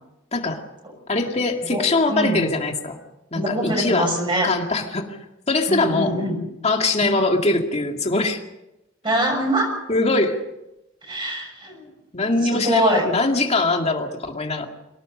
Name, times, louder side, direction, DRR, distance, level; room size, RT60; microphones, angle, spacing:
voice 1, 0.3-0.6 1.1-3.0 3.3-4.1 4.4-5.2 5.5-6.2 6.6-8.4 9.9-10.4 12.1-14.7, left 2 dB, 35° left, 3 dB, 2.3 m, -22 dB
voice 2, 2.1-2.4 3.3-4.5 5.7-6.4 7.0-7.1 9.0-9.7 11.0-11.8 12.5-13.1, right 1 dB, 25° right, 1 dB, 6.5 m, -23 dB
24.0 x 18.0 x 6.7 m, 0.92 s
head